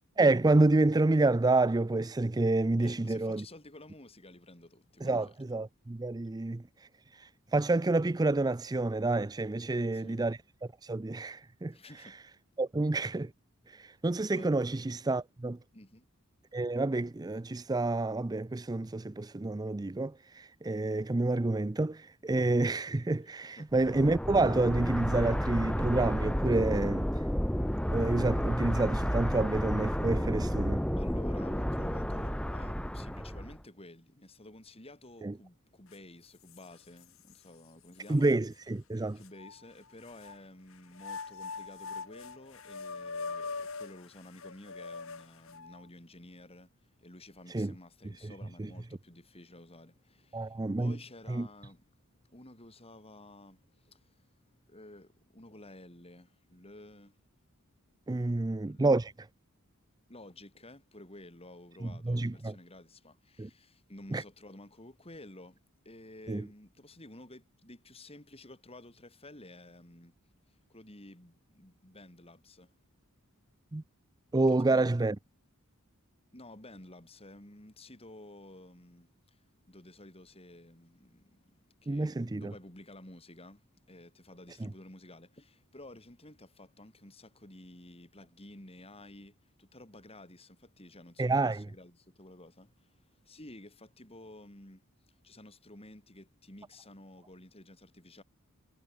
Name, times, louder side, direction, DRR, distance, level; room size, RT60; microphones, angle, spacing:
voice 1, 0.2-3.4 5.0-6.6 7.2-10.4 10.8-11.7 12.6-13.3 13.7-15.6 16.5-27.1 27.9-30.8 35.2-35.3 38.1-39.2 47.5-47.7 48.6-48.7 50.3-51.0 51.3-51.5 58.1-59.1 61.8-62.5 63.4-63.5 64.1-64.2 66.3-66.4 73.7-73.8 74.3-75.2 81.9-82.5 84.6-84.7 91.2-91.6, right 2 dB, 20° right, 0.5 m, -28 dB
voice 2, 2.8-5.4 9.6-10.2 11.7-12.1 14.3-14.5 15.7-16.1 23.6-23.7 31.0-38.3 39.1-51.9 52.2-54.3 54.7-57.2 58.1-58.9 60.1-70.1 70.7-72.7 74.5-74.9 76.3-79.4 79.7-81.5 81.8-92.9 93.2-94.8 95.2-98.2, left 1 dB, 25° left, 5.1 m, -52 dB
sound 1, 23.8-33.6, equal, 5° left, 1.6 m, -31 dB
sound 2, 35.9-36.0 36.5-37.4 38.0-38.1 39.2-40.4 40.9-45.9, left 4 dB, 65° left, 2.2 m, -42 dB
head